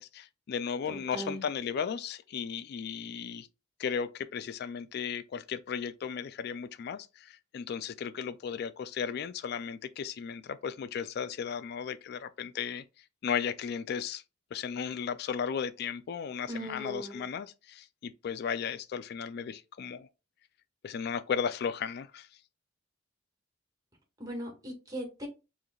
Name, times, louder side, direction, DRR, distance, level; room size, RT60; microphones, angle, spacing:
voice 1, 0.0-3.5 3.8-12.8 13.2-14.2 14.5-20.1 20.8-22.3, left 7 dB, 55° left, 0.3 m, -35 dB
voice 2, 0.9-1.4 16.5-17.2 24.2-25.3, equal, 20° right, 1.7 m, -39 dB
7.1 x 3.1 x 2.3 m
head